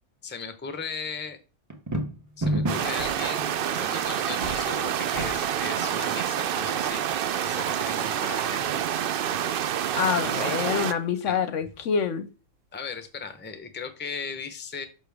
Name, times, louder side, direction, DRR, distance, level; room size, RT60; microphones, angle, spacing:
voice 1, 0.2-1.4 2.4-8.7 10.2-10.5 11.3-11.4 12.7-14.8, left 5 dB, 10° left, 0.6 m, -37 dB
sound 1, 1.7-3.0, right 1 dB, 15° right, 1.1 m, -27 dB
sound 2, 2.3-2.4 2.7-6.3 7.2-7.3 7.8-9.3 9.6-11.3 11.7-11.9 13.0-13.6, right 2 dB, 45° right, 1.3 m, -44 dB
sound 3, 2.7-10.9, right 9 dB, 75° right, 0.5 m, -28 dB
voice 2, 9.9-12.3, left 7 dB, 65° left, 0.9 m, -26 dB
6.7 x 6.0 x 3.5 m
omnidirectional pair, 1.5 m